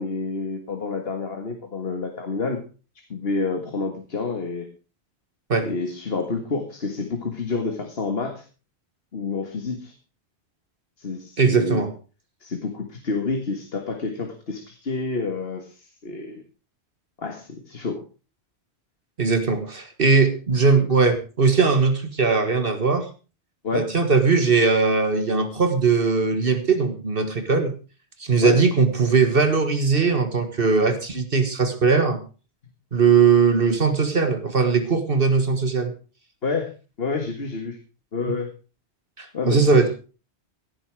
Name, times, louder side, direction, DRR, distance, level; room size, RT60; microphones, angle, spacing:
voice 1, 0.0-2.6 3.1-4.7 5.6-8.4 9.1-9.9 11.0-11.8 12.4-16.4 17.2-18.0 23.6-23.9 28.4-28.6 36.4-36.7 37.0-37.8 38.1-38.5 39.3-39.9, left 4 dB, 60° left, 5 dB, 2.0 m, -28 dB
voice 2, 11.4-11.9 19.2-23.1 23.7-27.7 28.2-32.2 32.9-35.9 39.2-39.9, right 4 dB, 55° right, 8 dB, 1.8 m, -20 dB
16.5 x 9.8 x 4.8 m, 0.35 s
omnidirectional pair, 1.1 m